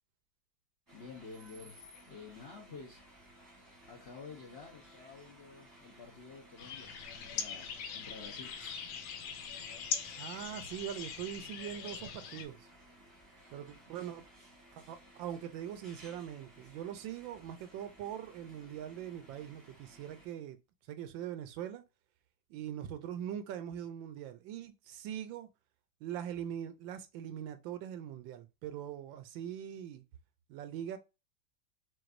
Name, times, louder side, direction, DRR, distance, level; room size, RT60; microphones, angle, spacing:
voice 1, 0.9-1.8 2.1-3.0 3.9-8.6, left 4 dB, 55° left, 0.7 m, -50 dB
sound 1, 0.9-20.3, right 1 dB, 15° right, 1.0 m, -58 dB
sound 2, 6.6-12.5, left 7 dB, 90° left, 1.5 m, -41 dB
voice 2, 10.2-12.7 13.5-14.2 14.7-20.6 20.9-21.8 22.5-25.5 26.0-30.0 30.5-31.0, right 10 dB, 75° right, 1.3 m, -42 dB
5.8 x 2.6 x 2.5 m
omnidirectional pair, 2.2 m